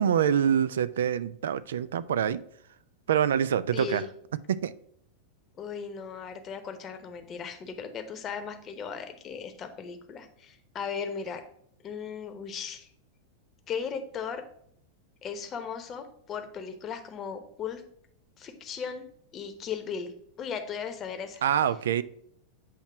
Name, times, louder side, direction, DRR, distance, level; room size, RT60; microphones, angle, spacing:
voice 1, 0.0-2.4 3.1-4.0 4.5-4.7 21.4-22.0, right 9 dB, 60° right, 15 dB, 0.3 m, -25 dB
voice 2, 3.7-4.1 5.6-11.4 11.8-12.9 13.7-14.4 15.2-17.8 18.4-19.1 19.3-20.1 20.4-21.4, left 6 dB, 30° left, 7 dB, 0.9 m, -37 dB
7.6 x 3.1 x 5.8 m, 0.67 s
figure-of-eight pair, 90°, 0 cm